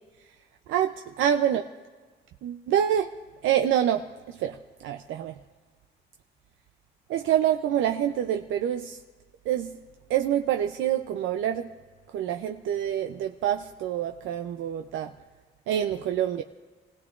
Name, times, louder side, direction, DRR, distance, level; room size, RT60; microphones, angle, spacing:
voice 1, 0.7-1.6 2.4-3.1 3.4-4.5 4.8-5.3 7.1-9.0 9.5-9.7 10.1-11.7 12.1-15.1 15.7-16.4, right 10 dB, 85° right, 6 dB, 0.5 m, -26 dB
27.0 x 17.5 x 2.4 m, 1.4 s
cardioid pair, 90°, 20 cm